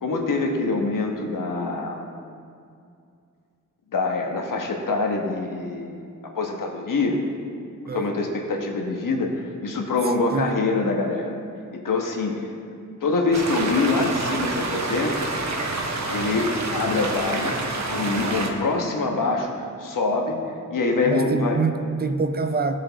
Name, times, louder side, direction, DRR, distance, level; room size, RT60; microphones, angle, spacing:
voice 1, 0.0-2.2 3.9-7.2 7.9-11.4 11.7-12.5 13.0-15.3 16.1-17.6 17.9-20.4 20.7-21.6, left 3 dB, 85° left, 2 dB, 1.3 m, -25 dB
sound 1, 13.3-18.5, right 2 dB, 60° right, 1.1 m, -28 dB
voice 2, 21.1-22.8, right 4 dB, 30° right, 7 dB, 0.6 m, -25 dB
16.5 x 6.5 x 4.0 m, 2.4 s
wide cardioid pair, 145°, 31 cm